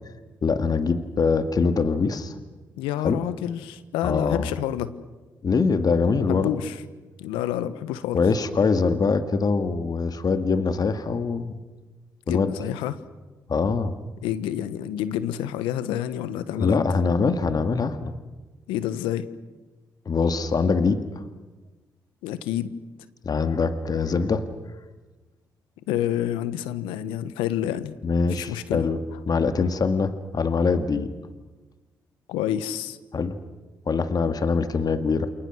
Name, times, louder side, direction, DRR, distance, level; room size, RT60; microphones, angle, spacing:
voice 1, 0.4-2.3 3.0-3.2 4.0-4.5 5.4-6.5 8.1-11.6 12.3-12.5 13.5-13.9 16.6-18.1 20.1-21.2 23.2-24.5 28.0-29.0 29.3-31.1 33.1-33.4 33.9-35.3, left 4 dB, 50° left, 9 dB, 2.1 m, -23 dB
voice 2, 2.8-5.0 6.3-6.8 7.2-8.2 12.3-13.0 14.2-16.8 18.7-19.3 22.2-22.7 25.9-27.9 28.3-28.9 32.3-33.0, left 11 dB, 85° left, 14 dB, 1.3 m, -28 dB
29.0 x 28.5 x 6.4 m, 1.2 s
hypercardioid pair, 45°, 9 cm